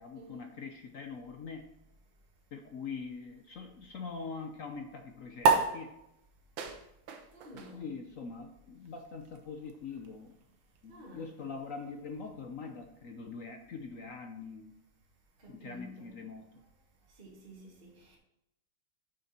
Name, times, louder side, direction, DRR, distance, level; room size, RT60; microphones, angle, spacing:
voice 1, 0.0-1.7 2.5-5.9 7.5-10.4 10.8-14.8 15.5-16.6, left 5 dB, 65° left, 0.8 m, -43 dB
sound 1, 5.4-12.2, right 4 dB, 65° right, 1.7 m, -34 dB
voice 2, 7.3-7.9 10.9-11.3 15.4-16.1 17.2-18.2, equal, 25° right, 2.2 m, -51 dB
9.4 x 6.8 x 4.3 m
omnidirectional pair, 2.4 m